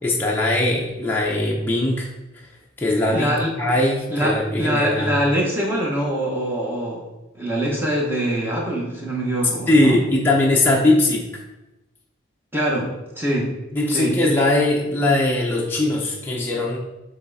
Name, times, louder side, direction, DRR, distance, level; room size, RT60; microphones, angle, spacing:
voice 1, 0.0-2.1 2.8-5.2 9.7-11.3 13.7-16.8, left 2 dB, 10° left, -4 dB, 0.7 m, -20 dB
voice 2, 3.1-3.5 4.1-7.0 7.3-10.0 12.5-12.9 13.2-13.5 13.9-14.1, right 1 dB, 10° right, -2 dB, 1.1 m, -23 dB
7.3 x 3.3 x 4.1 m, 1.0 s
head